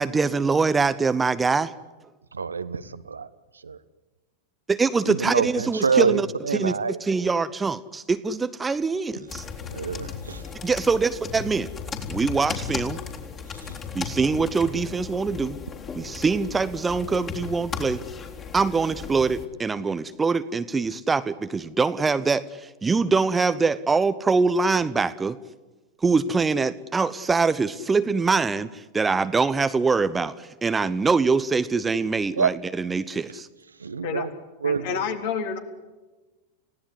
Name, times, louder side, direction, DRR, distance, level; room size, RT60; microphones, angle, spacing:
voice 1, 0.0-1.7 4.7-6.7 7.0-9.4 10.6-11.7 12.1-13.0 13.9-15.6 15.9-18.0 18.5-25.4 26.0-33.5, right 4 dB, 15° right, 13 dB, 0.9 m, -24 dB
voice 2, 2.3-3.3 3.6-3.8 5.0-7.0 9.7-10.4 13.6-13.7 32.4-32.5 33.8-34.3 34.6-35.0, right 5 dB, 75° right, 13 dB, 1.2 m, -26 dB
sound 1, 9.3-19.5, left 6 dB, 25° left, 3.8 m, -36 dB
voice 3, 34.6-35.6, left 7 dB, 55° left, 5 dB, 3.8 m, -29 dB
30.0 x 17.5 x 9.8 m, 1.2 s
figure-of-eight pair, 90°, 0 cm